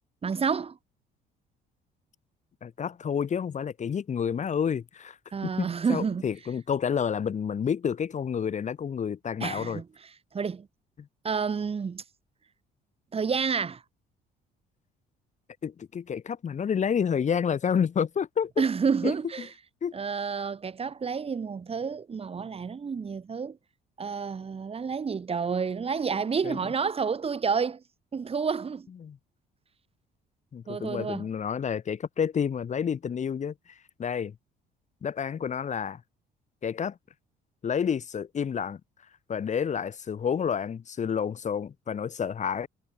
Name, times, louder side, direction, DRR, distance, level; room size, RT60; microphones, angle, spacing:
voice 1, 0.2-0.8 5.3-6.3 9.4-9.9 10.3-10.7 11.2-12.0 13.1-13.8 18.6-19.5 19.9-23.6 24.0-27.8 28.1-28.9 30.7-31.3, right 5 dB, 35° right, 7.5 m, -29 dB
voice 2, 2.6-5.2 5.4-9.8 15.6-18.7 19.0-19.1 19.8-19.9 26.4-26.6 29.0-29.2 30.5-33.5 34.0-34.3 35.0-36.0 36.6-36.9 37.6-38.8 39.3-42.7, left 7 dB, 40° left, 5.4 m, -29 dB
cardioid pair, 110°, 18 cm